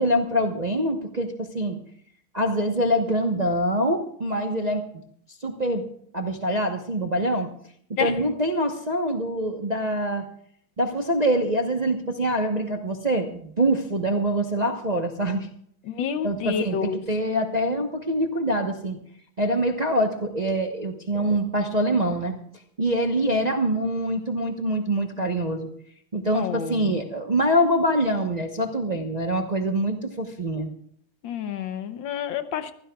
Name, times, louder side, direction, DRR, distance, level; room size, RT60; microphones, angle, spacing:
voice 1, 0.0-1.8 2.3-4.8 5.4-5.8 6.1-7.5 8.0-10.3 10.8-15.5 16.2-19.0 19.4-22.4 22.8-25.7 26.1-30.7, right 1 dB, 30° right, 3 dB, 0.8 m, -24 dB
voice 2, 15.8-17.0 26.3-27.0 31.2-32.7, left 7 dB, 70° left, 10 dB, 1.6 m, -29 dB
24.5 x 15.5 x 2.4 m, 0.65 s
omnidirectional pair, 2.2 m